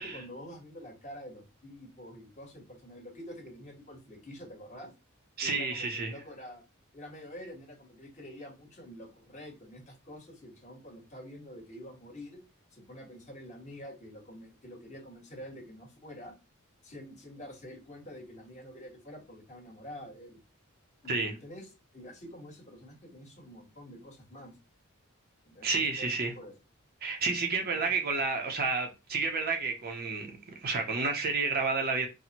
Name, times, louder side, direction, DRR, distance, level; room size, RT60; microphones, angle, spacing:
voice 1, 0.0-4.9 5.4-6.6 6.9-12.4 12.7-16.3 16.8-20.4 21.0-24.5 25.4-26.6 27.6-27.9, equal, 35° left, 1.3 m, -47 dB
voice 2, 5.4-6.1 21.1-21.3 25.6-26.3 27.0-32.1, right 4 dB, 45° right, 0.6 m, -30 dB
4.1 x 2.1 x 2.8 m
head